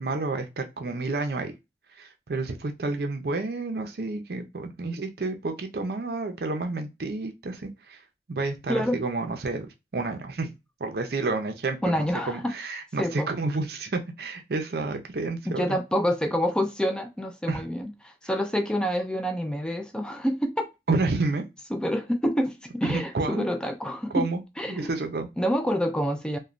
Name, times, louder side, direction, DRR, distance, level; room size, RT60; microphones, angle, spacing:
voice 1, 0.0-1.5 2.0-8.0 8.3-9.7 9.9-10.5 10.8-15.8 17.5-17.6 20.9-21.4 22.8-23.5 24.1-24.4 24.7-25.3, right 3 dB, 60° right, 0.5 m, -30 dB
voice 2, 8.7-9.0 11.8-12.5 13.0-13.3 15.5-20.7 21.7-24.3 24.6-24.9 25.4-26.4, equal, 5° left, 0.3 m, -27 dB
3.0 x 2.2 x 2.4 m
head